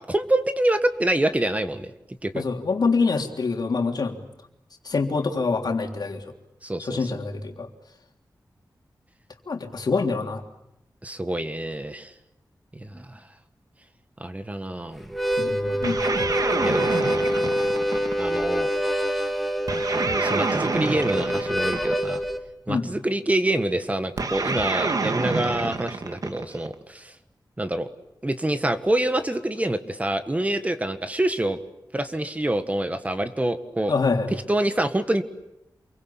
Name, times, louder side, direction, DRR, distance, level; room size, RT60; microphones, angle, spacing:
voice 1, 0.0-1.9 2.2-2.4 6.6-7.1 11.0-12.1 12.7-13.2 14.2-15.0 16.6-17.2 18.2-18.7 20.1-22.2 22.7-27.1 27.6-27.9 28.2-31.6 31.9-33.9 34.3-35.2, right 1 dB, 20° right, 9 dB, 1.6 m, -26 dB
voice 2, 2.4-4.2 4.9-6.2 6.9-7.7 9.5-10.4 15.4-16.0 22.7-22.9 33.9-34.3, left 4 dB, 65° left, 3 dB, 3.4 m, -25 dB
Harmonica, 15.0-22.4, equal, ahead, 2.2 m, -26 dB
sound 1, 15.8-18.4 19.7-22.2 24.2-26.7, right 3 dB, 55° right, 2.0 m, -27 dB
28.0 x 23.5 x 8.6 m, 0.86 s
wide cardioid pair, 110°, 7 cm